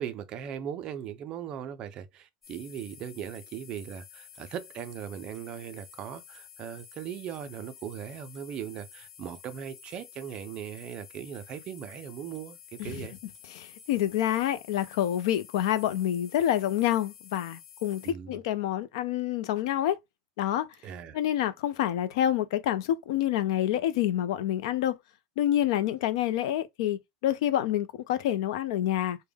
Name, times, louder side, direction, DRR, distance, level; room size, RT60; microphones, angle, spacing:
voice 1, 0.0-13.2 18.0-18.4 20.8-21.2, right 9 dB, 30° right, 0.3 m, -39 dB
sound 1, 2.4-18.1, left 8 dB, 5° left, 0.9 m, -51 dB
voice 2, 13.5-20.0 20.4-20.7 21.1-25.0 25.4-29.2, left 12 dB, 65° left, 0.5 m, -27 dB
3.4 x 2.1 x 3.4 m
supercardioid pair, 175°, 3 cm